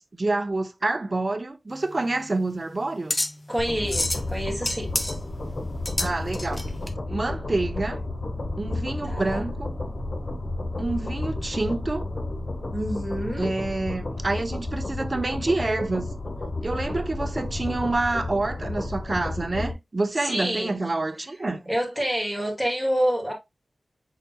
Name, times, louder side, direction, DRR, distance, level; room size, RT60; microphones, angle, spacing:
voice 1, 0.0-3.2 6.0-6.7 7.1-8.0 8.6-9.7 10.8-12.1 13.4-16.1 16.6-21.7, right 2 dB, 40° right, 0.7 m, -27 dB
sound 1, 1.7-6.9, left 1 dB, 25° left, 0.6 m, -31 dB
voice 2, 3.5-4.9 9.0-9.4 12.7-13.5 20.2-20.8 21.7-23.3, equal, 5° left, 2.0 m, -27 dB
sound 2, 3.6-19.7, left 2 dB, 50° left, 1.0 m, -32 dB
5.7 x 4.1 x 2.2 m
wide cardioid pair, 65°, 0 cm